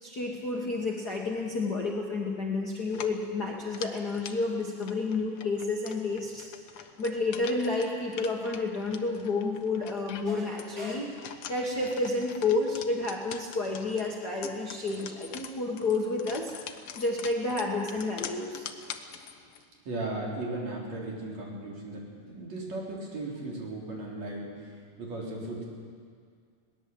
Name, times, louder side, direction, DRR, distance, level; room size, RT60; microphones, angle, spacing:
voice 1, 0.0-6.5 6.8-16.5 17.0-18.7, left 3 dB, 40° left, -2 dB, 1.7 m, -30 dB
sound 1, 2.9-19.6, left 8 dB, 70° left, 1.4 m, -45 dB
voice 2, 19.8-25.6, right 2 dB, 55° right, -2 dB, 5.1 m, -36 dB
21.5 x 18.5 x 7.9 m, 2.1 s
omnidirectional pair, 3.8 m